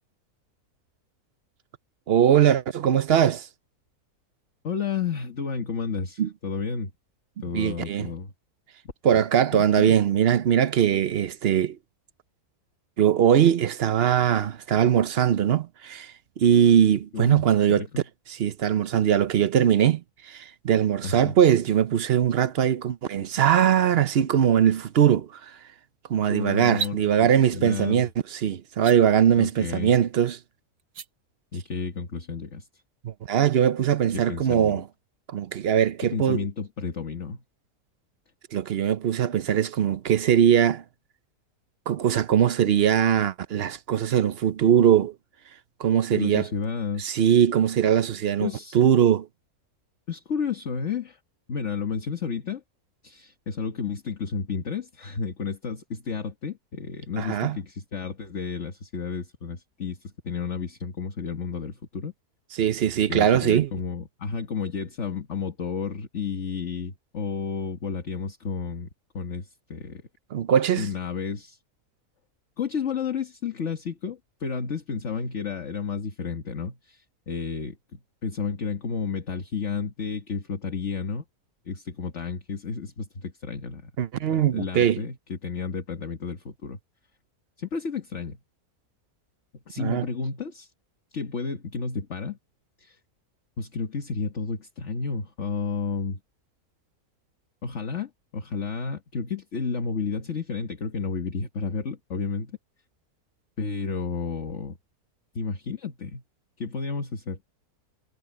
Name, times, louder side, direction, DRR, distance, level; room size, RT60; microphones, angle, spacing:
voice 1, 2.1-3.5 6.2-6.3 7.5-8.1 9.0-11.8 13.0-16.1 16.4-17.9 18.4-20.0 20.3-25.3 26.1-30.4 33.0-34.8 35.3-36.4 38.5-40.8 41.9-45.1 45.8-46.5 47.0-48.5 48.7-49.3 57.2-57.6 62.6-63.7 70.3-70.9 84.0-85.0 89.8-90.0, right 9 dB, 55° right, 0.8 m, -21 dB
voice 2, 4.6-6.9 7.4-8.3 9.5-10.0 17.1-18.1 21.0-21.3 26.3-28.1 29.4-29.9 31.5-32.8 34.1-34.8 36.0-37.4 46.1-47.1 48.4-48.8 50.1-51.2 51.5-52.6 53.0-62.1 63.1-68.9 69.1-70.0 70.8-71.6 72.6-81.2 81.7-83.9 84.3-86.8 87.6-88.4 89.5-90.7 91.1-92.4 92.8-93.0 93.6-96.2 97.6-102.6 103.6-104.8 105.4-106.2 106.6-107.4, left 5 dB, 50° left, 1.8 m, -32 dB
sound 1, 26.6-27.0 28.7-29.0 30.8-31.1, right 6 dB, 85° right, 1.6 m, -32 dB
omnidirectional pair, 1.6 m